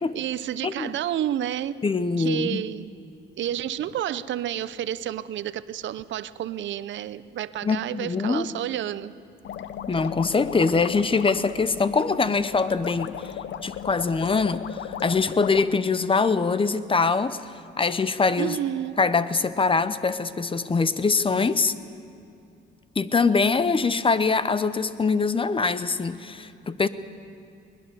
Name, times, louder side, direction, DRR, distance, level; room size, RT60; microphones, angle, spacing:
voice 1, 0.0-1.8 2.2-2.9 3.4-9.1 18.4-19.0, right 11 dB, 70° right, 15 dB, 0.6 m, -30 dB
voice 2, 1.8-2.6 7.6-8.5 9.9-13.1 13.6-17.4 17.8-18.6 19.0-21.7 23.0-26.9, left 4 dB, 25° left, 14 dB, 0.9 m, -23 dB
sound 1, 9.4-15.7, left 9 dB, 65° left, 0.9 m, -36 dB
21.0 x 20.5 x 6.9 m, 2.6 s
cardioid pair, 90°, 20 cm